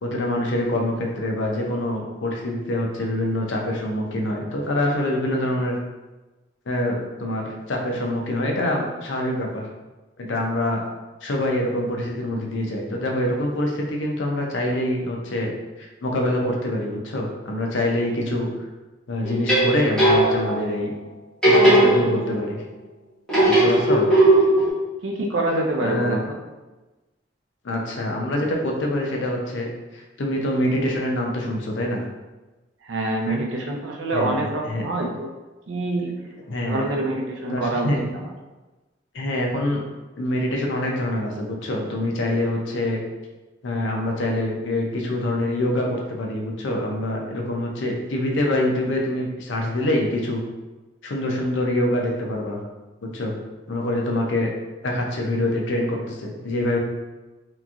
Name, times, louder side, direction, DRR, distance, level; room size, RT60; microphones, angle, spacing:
voice 1, 0.0-5.8 6.7-9.6 10.2-10.8 11.2-15.5 15.8-18.5 19.1-20.9 21.4-22.6 23.5-24.1 25.8-26.2 27.6-29.7 29.9-32.0 33.3-33.4 34.1-34.9 36.5-36.9 37.5-38.0 39.1-39.8 40.2-43.0 43.6-50.4 51.0-52.6 53.1-53.3 53.7-54.5 54.8-56.8, left 1 dB, 75° left, 0 dB, 0.5 m, -25 dB
sound 1, 19.2-20.6 21.4-22.5 23.3-24.7, right 1 dB, 5° left, 1.0 m, -17 dB
voice 2, 23.6-24.0 25.0-26.4 32.8-35.3 35.7-36.1 36.7-38.3, right 2 dB, 80° right, 1 dB, 0.5 m, -26 dB
2.9 x 2.5 x 2.3 m, 1.1 s
head